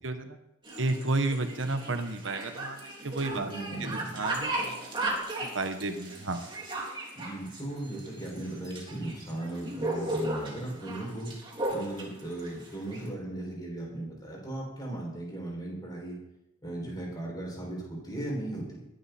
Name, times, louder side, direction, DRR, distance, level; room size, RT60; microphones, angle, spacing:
voice 1, 0.0-0.4 0.8-3.5 3.8-4.9 5.5-6.4, right 2 dB, 65° right, 7 dB, 1.2 m, -32 dB
sound 1, 0.6-13.1, right 2 dB, 25° right, 3.3 m, -35 dB
voice 2, 3.3-4.2 7.1-11.4 11.7-16.2 16.6-18.8, right 1 dB, 20° left, -3 dB, 6.2 m, -37 dB
22.0 x 11.0 x 4.3 m, 0.86 s
head